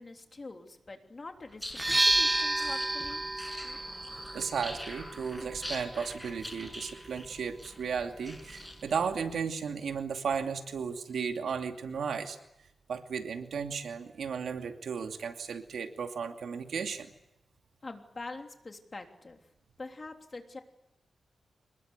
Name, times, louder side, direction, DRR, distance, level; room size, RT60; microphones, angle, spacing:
voice 1, 0.0-3.2 17.8-19.4 19.8-20.6, left 3 dB, 30° left, 4 dB, 3.3 m, -44 dB
sound 1, 1.5-9.1, left 1 dB, 5° left, 6.4 m, -44 dB
sound 2, 1.7-9.4, right 2 dB, 15° right, 1.1 m, -33 dB
voice 2, 4.3-12.4 12.9-17.1, right 6 dB, 75° right, 5 dB, 2.6 m, -34 dB
26.5 x 21.5 x 8.4 m, 0.88 s
wide cardioid pair, 140°, 0 cm